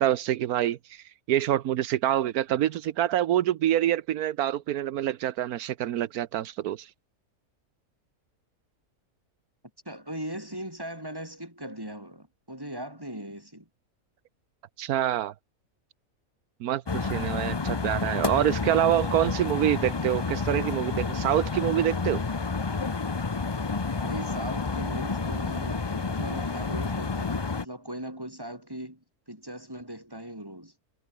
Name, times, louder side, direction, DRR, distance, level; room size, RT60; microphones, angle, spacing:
voice 1, 0.0-6.9 14.8-15.3 16.6-22.2, right 12 dB, 85° right, 1.3 m, -26 dB
voice 2, 9.8-13.7 23.9-30.7, right 1 dB, 15° right, 6.6 m, -39 dB
sound 1, 16.9-27.6, left 4 dB, 25° left, 0.5 m, -30 dB
omnidirectional pair, 1.5 m